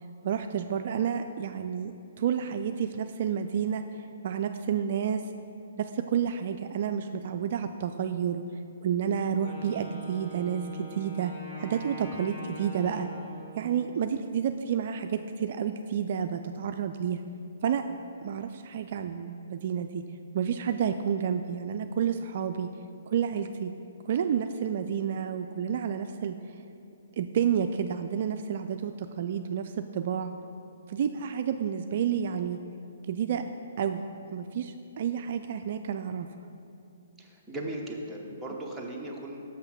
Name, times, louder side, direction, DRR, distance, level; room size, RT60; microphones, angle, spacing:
voice 1, 0.2-1.9 2.2-5.2 5.8-8.4 8.8-11.3 11.6-13.1 13.5-17.2 17.6-17.9 18.2-20.0 20.3-22.7 23.1-23.7 24.1-26.6 27.2-30.3 30.9-32.6 33.1-33.4 33.8-34.0 34.3-36.3, right 8 dB, 55° right, 7 dB, 0.3 m, -30 dB
Wind instrument woodwind instrument, 9.2-14.1, right 1 dB, 30° left, 1.7 m, -44 dB
voice 2, 37.2-39.4, right 1 dB, 5° right, -3 dB, 1.0 m, -37 dB
6.2 x 5.6 x 5.9 m, 2.6 s
hypercardioid pair, 135°, 0 cm